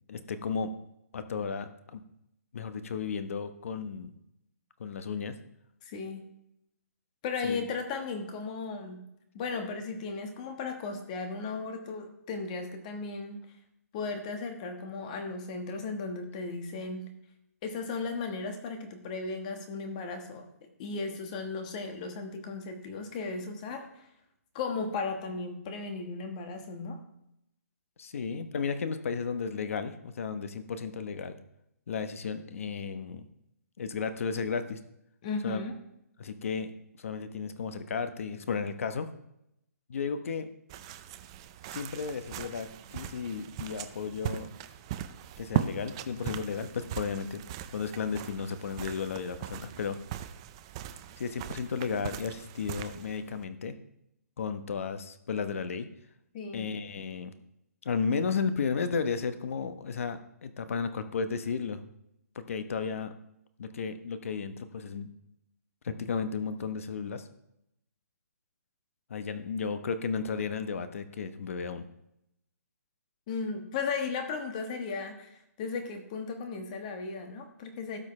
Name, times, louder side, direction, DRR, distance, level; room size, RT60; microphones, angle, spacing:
voice 1, 0.1-0.7 1.1-2.0 2.5-4.1 4.8-5.3 7.4-7.6 28.0-31.4 31.9-33.3 33.8-34.8 35.4-35.6 36.2-36.7 37.0-39.1 39.9-40.5 41.7-44.5 45.4-47.4 47.7-50.0 51.2-53.7 54.4-55.9 56.5-57.3 57.8-61.8 62.3-63.1 63.6-65.1 65.8-67.3 69.1-71.9, left 5 dB, 55° left, 10 dB, 1.0 m, -34 dB
voice 2, 5.8-6.3 7.2-9.0 9.3-13.4 13.9-17.1 17.6-20.5 20.8-24.1 24.5-27.0 35.2-35.8 56.3-56.7 73.3-78.0, left 4 dB, 25° left, 5 dB, 1.3 m, -36 dB
sound 1, 40.7-53.4, right 11 dB, 20° right, 0.4 m, -39 dB
17.5 x 6.4 x 3.2 m, 0.81 s
hypercardioid pair, 170°, 9 cm